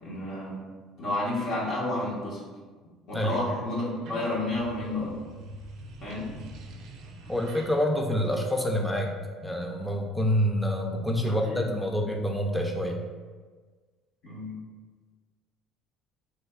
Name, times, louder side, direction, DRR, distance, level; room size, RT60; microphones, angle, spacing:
voice 1, 0.0-0.6 1.0-2.4 3.1-5.2 6.0-6.3 11.2-11.7 14.2-14.6, left 1 dB, 65° left, -7 dB, 1.0 m, -31 dB
sound 1, 3.9-9.1, right 2 dB, 70° right, 0.4 m, -46 dB
voice 2, 7.3-9.1 9.4-13.0, equal, 5° left, 2 dB, 0.5 m, -27 dB
3.2 x 2.2 x 3.5 m, 1.4 s
supercardioid pair, 75°, 0 cm